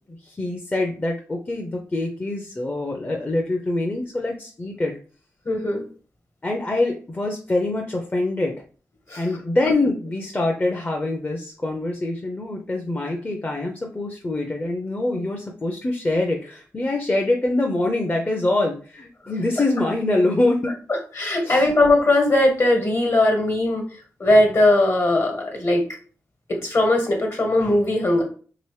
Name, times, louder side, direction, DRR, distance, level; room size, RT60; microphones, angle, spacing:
voice 1, 0.1-5.0 6.4-8.5 9.1-20.7 21.4-21.7, left 2 dB, 30° left, 1 dB, 0.6 m, -24 dB
voice 2, 5.4-5.8 9.1-9.2 21.2-23.8 24.2-25.8 26.5-28.2, left 1 dB, 50° left, 3 dB, 1.3 m, -19 dB
2.9 x 2.9 x 3.2 m, 0.40 s
cardioid pair, 55°, 6 cm